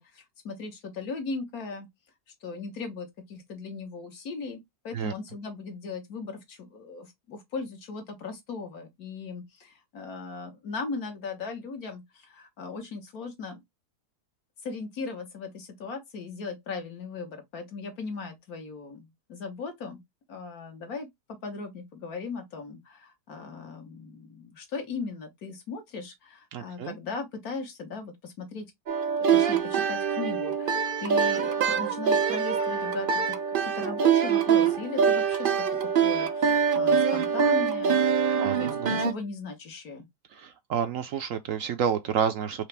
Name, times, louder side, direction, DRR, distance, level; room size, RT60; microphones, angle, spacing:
voice 1, 0.0-1.9 2.4-4.6 4.8-13.6 14.6-20.0 20.3-28.7 29.2-40.1, left 4 dB, 70° left, 1.7 m, -38 dB
voice 2, 26.5-27.0 38.4-39.0 40.3-42.7, right 7 dB, 70° right, 0.9 m, -30 dB
sound 1, 28.9-39.1, right 7 dB, 90° right, 0.4 m, -24 dB
4.8 x 2.9 x 3.3 m
omnidirectional pair, 1.7 m